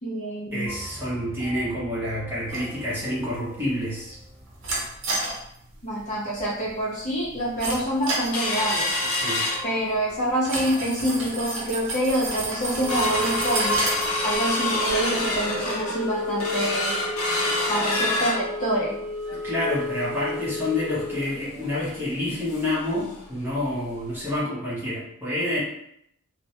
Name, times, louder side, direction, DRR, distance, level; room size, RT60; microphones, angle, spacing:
voice 1, 0.0-0.7 5.8-8.9 9.6-13.8 14.2-17.0 17.7-19.0, right 1 dB, 35° left, -5 dB, 0.5 m, -26 dB
voice 2, 0.5-4.2 9.1-9.5 17.9-18.0 19.4-25.6, left 1 dB, 10° right, -8 dB, 0.7 m, -28 dB
sound 1, 0.7-4.9, equal, 5° left, 1.0 m, -43 dB
sound 2, 2.5-15.8, right 2 dB, 60° right, 0.6 m, -34 dB
sound 3, 8.3-10.2 10.6-10.7 11.0-11.4 11.9-12.0 12.3-22.8 23.2-23.3 23.6-23.8 24.3-24.4, left 2 dB, 85° left, 0.6 m, -27 dB
2.2 x 2.0 x 2.8 m, 0.74 s
head